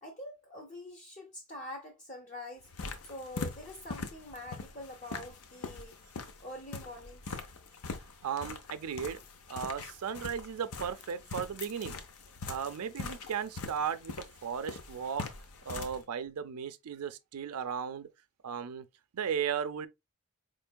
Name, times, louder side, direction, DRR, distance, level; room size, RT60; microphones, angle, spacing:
voice 1, 0.0-2.7 3.1-6.0 6.4-7.4, left 1 dB, 35° left, 0.6 m, -45 dB
sound 1, 2.6-16.0, left 4 dB, 75° left, 0.6 m, -43 dB
voice 2, 8.2-9.2 9.5-12.0 12.5-14.1 14.4-15.2 15.7-18.1 18.4-18.9 19.1-19.9, right 7 dB, 85° right, 0.5 m, -35 dB
4.5 x 3.2 x 2.2 m
head